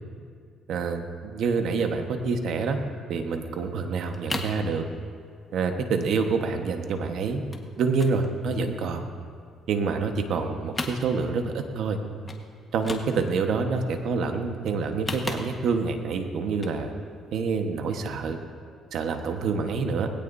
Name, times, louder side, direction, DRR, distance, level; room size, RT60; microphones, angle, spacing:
voice 1, 0.7-2.8 3.1-4.8 5.5-7.4 7.8-9.0 9.7-12.0 12.7-16.9 17.3-18.4 18.9-20.1, right 4 dB, 70° right, 5 dB, 1.3 m, -27 dB
sound 1, 4.0-4.6 5.0-5.4 5.7-5.8 6.0-6.2 6.5-7.0 7.5-7.7 7.9-9.2 9.6-10.4 10.6-11.5 11.8-11.9 12.2-12.4 12.7-13.5 14.8-15.9 16.5-16.8 17.2-17.3, left 2 dB, 25° left, 1.4 m, -36 dB
20.0 x 17.0 x 2.7 m, 2.1 s
cardioid pair, 95°, 0 cm